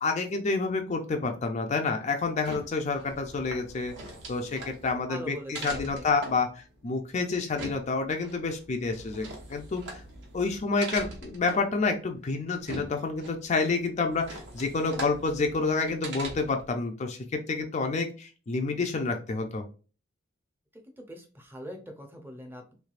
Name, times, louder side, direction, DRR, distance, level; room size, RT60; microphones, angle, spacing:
voice 1, 0.0-3.9 4.3-10.0 10.3-19.6, left 4 dB, 35° left, 5 dB, 0.4 m, -29 dB
sound 1, 2.2-16.7, right 2 dB, 60° right, 1.0 m, -43 dB
voice 2, 5.1-6.1 14.9-15.1 21.0-22.7, equal, 10° right, 4 dB, 0.6 m, -42 dB
3.2 x 3.1 x 2.4 m, 0.36 s
head